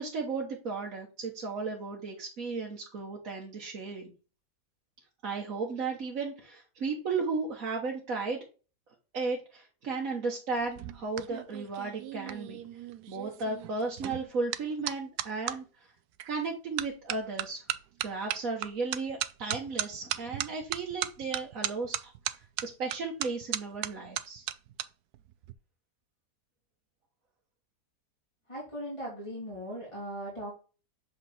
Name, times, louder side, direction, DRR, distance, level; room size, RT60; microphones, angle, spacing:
voice 1, 0.0-4.1 5.2-8.5 9.1-12.6 13.1-15.9 16.3-17.7 18.0-22.1 22.6-24.4, right 4 dB, 60° right, -1 dB, 1.5 m, -35 dB
sound 1, 10.6-15.6 16.2-16.5 16.8-24.9 25.1-25.5, right 12 dB, 80° right, 1.1 m, -36 dB
voice 2, 28.5-30.5, equal, 20° left, -5 dB, 2.5 m, -38 dB
7.5 x 4.0 x 4.1 m, 0.35 s
omnidirectional pair, 1.6 m